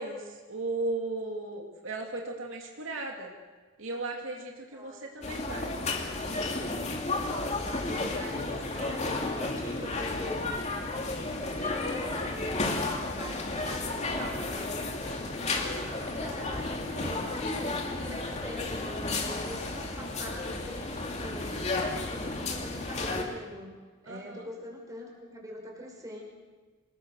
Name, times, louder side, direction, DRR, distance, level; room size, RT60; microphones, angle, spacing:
voice 1, 0.0-3.3 3.8-5.7 8.2-8.4 8.7-9.3 15.0-15.2 24.1-24.5, right 2 dB, 70° right, 1 dB, 3.0 m, -37 dB
voice 2, 4.7-5.1 5.4-5.9 7.4-10.5 11.1-15.0 15.5-21.6 22.0-23.7 24.0-26.2, equal, 15° right, 0 dB, 5.3 m, -43 dB
sound 1, 5.2-23.3, left 2 dB, 35° left, 2.7 m, -33 dB
26.5 x 20.5 x 6.5 m, 1.4 s
head